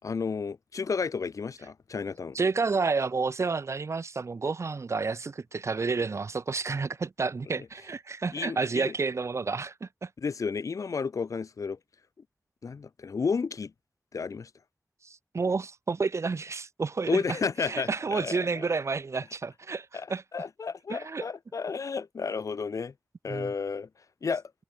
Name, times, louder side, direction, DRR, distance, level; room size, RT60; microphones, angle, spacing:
voice 1, 0.0-2.4 8.3-8.9 10.2-11.8 12.6-13.7 14.1-14.5 17.1-18.6 19.9-20.1 20.3-22.9 23.2-23.9 24.2-24.4, left 5 dB, 85° left, 3.1 m, -32 dB
voice 2, 2.3-10.1 15.0-20.2 20.9-21.2 23.3-23.5, right 4 dB, 60° right, 1.3 m, -30 dB
wide cardioid pair, 80°, 5 cm